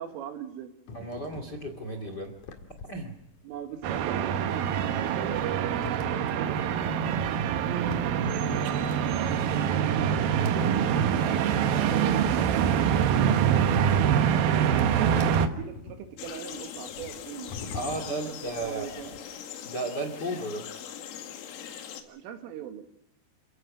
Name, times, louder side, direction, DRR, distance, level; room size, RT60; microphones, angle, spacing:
voice 1, 0.0-1.1 3.4-6.8 9.1-14.6 15.5-19.2 22.0-22.8, right 9 dB, 90° right, 6 dB, 4.6 m, -41 dB
sound 1, 0.9-19.2, left 4 dB, 55° left, 2.7 m, -44 dB
voice 2, 0.9-2.3 2.9-3.1 17.7-19.2 19.6-20.7, right 2 dB, 35° left, 6 dB, 1.8 m, -34 dB
sound 2, 3.8-15.5, right 8 dB, 70° right, 2.3 m, -25 dB
sound 3, 16.2-22.0, left 9 dB, 85° left, 4.5 m, -41 dB
28.5 x 17.0 x 6.4 m, 0.80 s
omnidirectional pair, 5.6 m